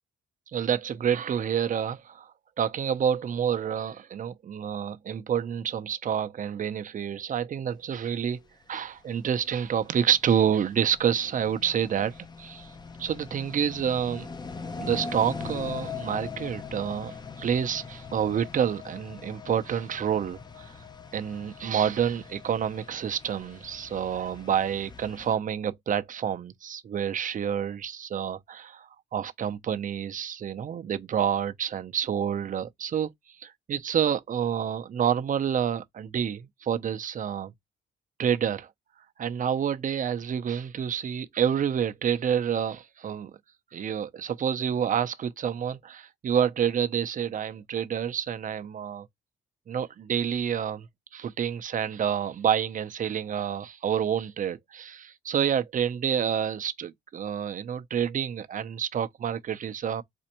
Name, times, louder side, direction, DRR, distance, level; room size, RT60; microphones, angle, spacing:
voice 1, 0.5-2.3 2.6-8.4 8.7-12.7 13.0-14.3 14.8-20.7 21.1-33.1 33.4-37.5 38.2-38.7 39.2-43.4 43.7-49.1 49.7-50.9 51.1-60.0, right 8 dB, 40° right, 0.5 m, -28 dB
sound 1, 8.7-25.3, left 5 dB, 20° left, 0.5 m, -41 dB
4.2 x 2.5 x 2.9 m
cardioid pair, 90°, 20 cm